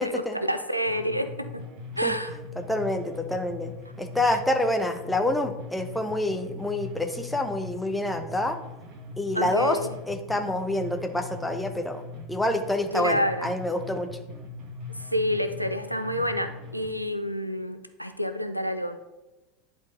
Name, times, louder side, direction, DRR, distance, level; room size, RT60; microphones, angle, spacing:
voice 1, 0.0-1.6 2.0-2.3 4.3-4.4 9.3-9.8 12.9-13.5 15.1-19.0, equal, 90° right, 9 dB, 0.4 m, -28 dB
sound 1, 0.9-16.9, left 3 dB, 45° right, 1.4 m, -40 dB
voice 2, 2.6-3.7 4.0-8.6 9.2-9.8 10.1-12.0 12.3-14.1, left 1 dB, 5° left, 5 dB, 0.8 m, -27 dB
10.5 x 4.0 x 3.9 m, 1.0 s
figure-of-eight pair, 75°, 0 cm